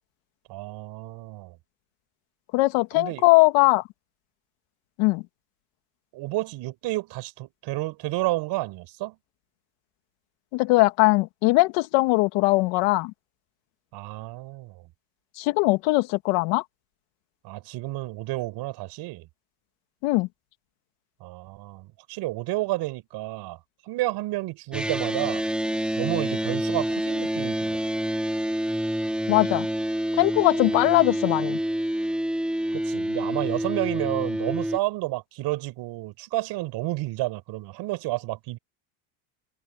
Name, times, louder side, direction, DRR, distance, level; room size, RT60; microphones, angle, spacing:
voice 1, 0.5-1.6 3.0-3.2 6.1-9.2 13.9-14.8 17.4-19.3 21.2-23.6 23.9-25.4 26.0-27.8 30.6-30.8 32.7-38.6, right 18 dB, 55° right, 5.2 m, -31 dB
voice 2, 2.5-3.8 5.0-5.2 10.5-13.1 15.4-16.6 20.0-20.3 29.3-29.7 30.2-31.6, left 22 dB, 65° left, 2.2 m, -20 dB
sound 1, 24.7-34.8, right 1 dB, ahead, 4.6 m, -27 dB
supercardioid pair, 135°, 47 cm